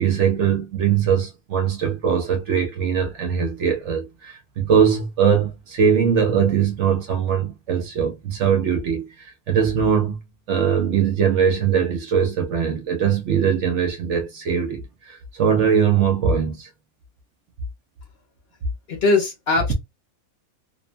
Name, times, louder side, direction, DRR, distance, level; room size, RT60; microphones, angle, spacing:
voice 1, 0.0-10.2 10.5-16.7, right 7 dB, 65° right, 0.8 m, -21 dB
voice 2, 18.9-19.7, left 3 dB, 55° left, 0.8 m, -20 dB
2.8 x 2.1 x 2.4 m
omnidirectional pair, 1.5 m